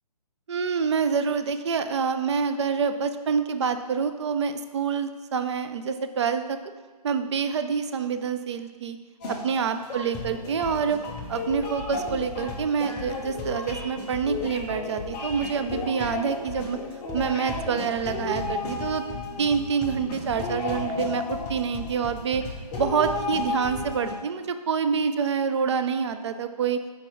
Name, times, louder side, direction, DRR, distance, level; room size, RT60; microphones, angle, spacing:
voice 1, 0.5-6.6 7.0-9.0 9.3-11.0 11.3-16.8 17.1-19.0 19.4-22.4 22.8-26.8, right 6 dB, 45° right, 9 dB, 0.4 m, -27 dB
sound 1, 9.2-24.1, left 3 dB, 10° left, 0.5 m, -33 dB
4.5 x 4.4 x 5.5 m, 1.4 s
hypercardioid pair, 155°, 21 cm